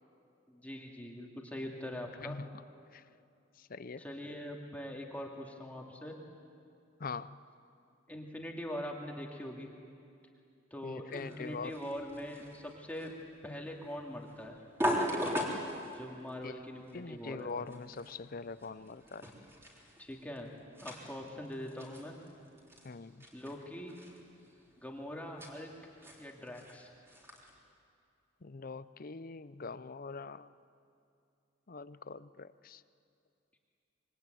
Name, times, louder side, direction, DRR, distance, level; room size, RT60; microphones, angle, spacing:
voice 1, 0.5-2.4 4.0-6.2 8.1-9.7 10.7-13.1 13.4-14.6 15.8-17.5 20.0-20.5 20.8-22.1 23.3-24.0 24.8-25.7 26.2-26.9, equal, 10° left, 0 dB, 2.4 m, -43 dB
voice 2, 2.2-2.6 2.9-3.0 3.6-4.0 7.0-7.4 10.8-11.8 16.4-16.6 16.9-19.3 22.8-23.3 28.4-30.5 31.7-32.8, left 4 dB, 45° left, 15 dB, 0.6 m, -43 dB
sound 1, 11.1-27.6, equal, 15° right, 3.6 m, -41 dB
25.5 x 23.0 x 9.3 m, 2.5 s
head